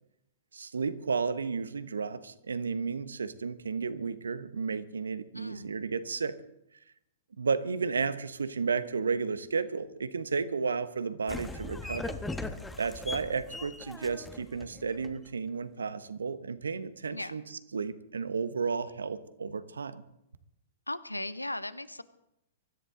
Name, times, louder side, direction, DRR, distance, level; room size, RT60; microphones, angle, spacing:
voice 1, 0.5-6.4 7.4-12.2 12.8-17.4 17.7-20.0, right 5 dB, 75° right, 13 dB, 1.1 m, -33 dB
voice 2, 5.3-5.7 17.1-17.3 20.9-22.0, left 1 dB, 90° left, 15 dB, 0.8 m, -37 dB
sound 1, 11.3-15.3, left 2 dB, 10° left, 1.2 m, -39 dB
24.0 x 13.5 x 3.8 m, 0.81 s
figure-of-eight pair, 110°, 0 cm